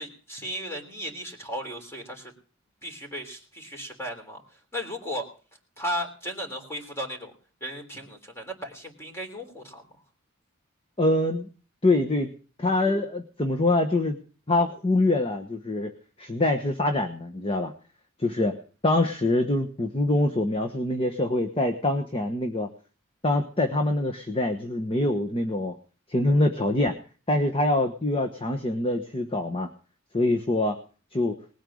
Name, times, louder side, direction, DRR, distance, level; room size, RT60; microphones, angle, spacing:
voice 1, 0.0-2.3 2.8-5.3 5.8-7.3 7.6-9.8, equal, 15° left, 4 dB, 3.4 m, -35 dB
voice 2, 11.0-11.5 11.8-12.3 12.6-14.2 14.5-15.9 16.2-17.7 18.2-22.7 23.2-25.7 26.1-27.0 27.3-29.7 30.1-30.8 31.1-31.4, left 2 dB, 30° left, 5 dB, 1.1 m, -24 dB
20.0 x 8.9 x 6.3 m, 0.40 s
head